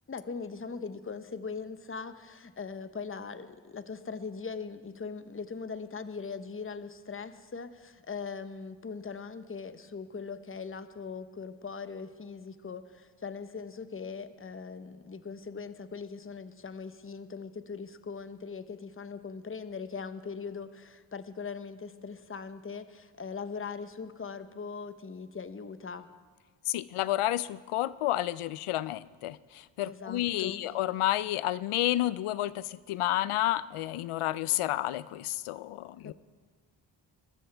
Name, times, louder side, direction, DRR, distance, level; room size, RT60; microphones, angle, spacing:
voice 1, 0.1-26.1 29.8-30.6 36.0-36.1, left 5 dB, 25° left, 11 dB, 0.9 m, -40 dB
voice 2, 26.7-36.1, left 14 dB, 80° left, 18 dB, 0.5 m, -30 dB
22.0 x 12.5 x 3.4 m, 1.5 s
supercardioid pair, 40°, 49 cm